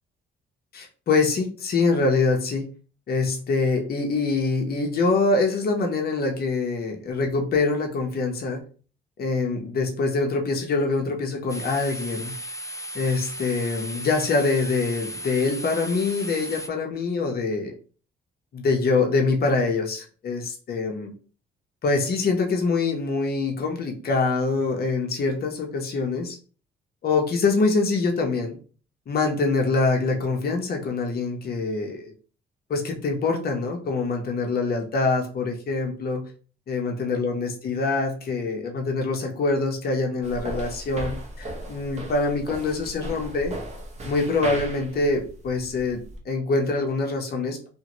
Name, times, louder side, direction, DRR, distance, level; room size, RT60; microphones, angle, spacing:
voice 1, 0.7-2.7 3.1-8.6 9.2-12.3 12.9-17.7 18.5-21.1 21.8-26.4 27.0-28.6 29.1-32.1 32.7-36.3 36.7-43.6 44.0-47.7, left 3 dB, 50° left, 2 dB, 0.8 m, -24 dB
sound 1, 11.5-16.7, equal, 15° left, 0.4 m, -36 dB
sound 2, 40.2-46.2, right 1 dB, 35° right, 0.9 m, -36 dB
2.6 x 2.5 x 3.0 m, 0.39 s
cardioid pair, 90°, 20 cm